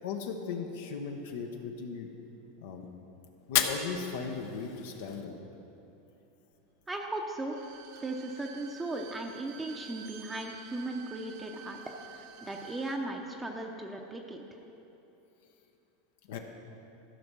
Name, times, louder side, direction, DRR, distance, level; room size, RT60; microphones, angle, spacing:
voice 1, 0.0-2.1 2.6-2.9 3.5-5.4 16.3-16.4, left 5 dB, 75° left, 3 dB, 0.9 m, -37 dB
Fire, 3.4-5.4, left 9 dB, 60° left, 0.7 m, -33 dB
voice 2, 6.9-7.6 8.0-11.8 12.1-14.4, right 2 dB, 10° right, 1 dB, 0.7 m, -37 dB
Bowed string instrument, 7.4-13.0 13.3-13.4, right 8 dB, 60° right, 0.7 m, -50 dB
13.5 x 5.5 x 6.1 m, 2.9 s
supercardioid pair, 130°, 0 cm